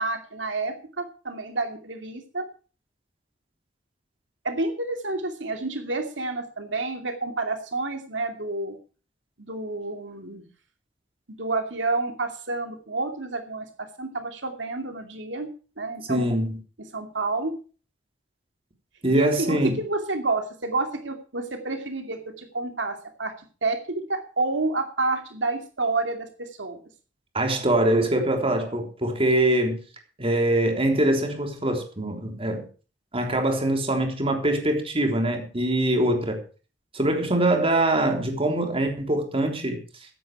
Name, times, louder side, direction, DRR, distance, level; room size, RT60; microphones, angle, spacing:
voice 1, 0.0-2.5 4.4-8.8 9.4-10.4 11.4-15.5 15.8-16.3 16.9-17.5 19.1-23.3 23.6-26.8, right 3 dB, 75° right, 2.5 m, -29 dB
voice 2, 16.1-16.6 19.0-19.7 27.3-29.8 30.2-32.7 33.1-36.4 36.9-39.8, right 1 dB, 30° right, 3.5 m, -23 dB
15.0 x 11.0 x 4.7 m
head